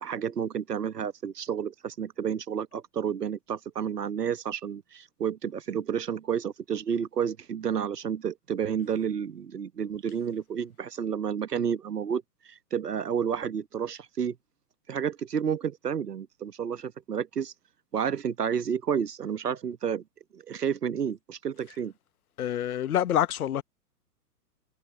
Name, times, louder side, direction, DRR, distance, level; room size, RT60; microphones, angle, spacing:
voice 1, 0.0-14.4 14.9-17.5 17.9-20.0 20.3-21.9, right 7 dB, 75° right, 1.3 m, -30 dB
voice 2, 22.4-23.6, left 10 dB, 65° left, 1.1 m, -26 dB
figure-of-eight pair, 110°, 47 cm